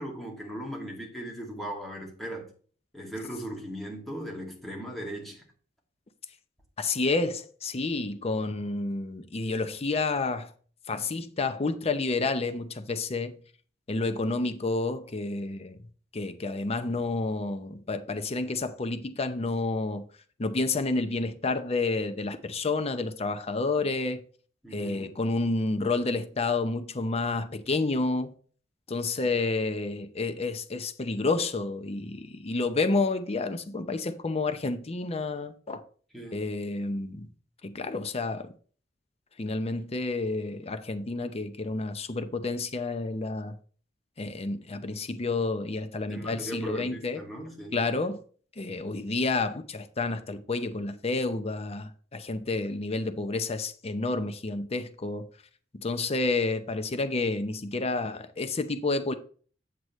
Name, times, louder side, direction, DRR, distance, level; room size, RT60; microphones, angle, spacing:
voice 1, 0.0-2.5 2.9-5.4 24.6-25.1 36.1-36.5 46.1-47.8, right 1 dB, ahead, 2.2 m, -38 dB
voice 2, 6.8-10.5 10.9-13.4 13.9-15.8 16.1-20.1 20.4-24.2 24.7-28.3 28.9-35.8 36.3-37.3 37.6-38.5 39.4-43.6 44.2-47.2 47.7-48.2 48.6-55.3 55.7-59.1, left 3 dB, 35° left, 0.6 m, -30 dB
7.9 x 7.6 x 3.1 m
head